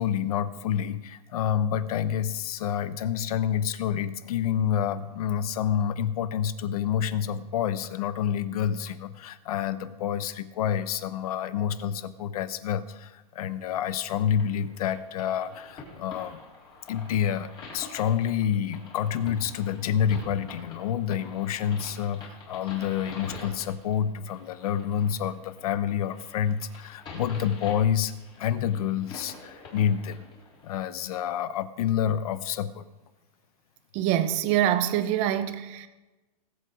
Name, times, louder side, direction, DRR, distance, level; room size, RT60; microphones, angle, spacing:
voice 1, 0.0-16.4 16.9-30.2 30.6-32.9, left 9 dB, 70° left, 0.9 m, -28 dB
sound 1, 14.1-30.8, left 3 dB, 25° left, 4.0 m, -46 dB
voice 2, 33.9-35.9, right 11 dB, 35° right, 0.9 m, -25 dB
20.0 x 8.2 x 4.9 m
supercardioid pair, 165°, 20 cm